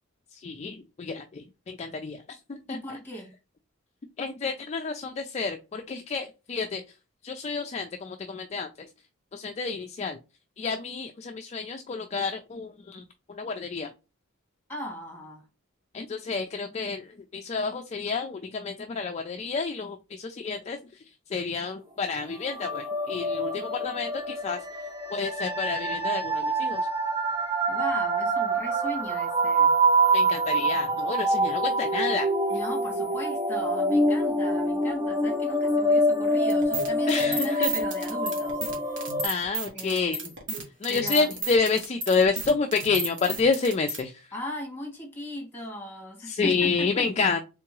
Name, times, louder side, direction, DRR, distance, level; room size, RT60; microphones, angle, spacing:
voice 1, 0.3-2.2 2.5-2.8 4.2-6.8 7.2-8.9 9.3-10.2 10.6-13.0 13.3-13.9 15.9-20.8 21.3-24.6 25.1-26.9 30.1-32.3 37.1-37.7 39.2-40.2 40.8-44.3 46.3-47.4, left 4 dB, 35° left, 0.4 m, -29 dB
voice 2, 2.7-3.3 14.7-15.5 27.7-29.7 32.5-38.6 38.9-39.0 39.7-40.3 40.9-41.3 44.3-47.1, left 1 dB, 10° left, 1.9 m, -38 dB
sound 1, 22.5-39.3, right 1 dB, 25° right, 0.9 m, -26 dB
sound 2, 36.5-44.0, right 3 dB, 60° right, 1.4 m, -32 dB
3.7 x 3.5 x 3.0 m
head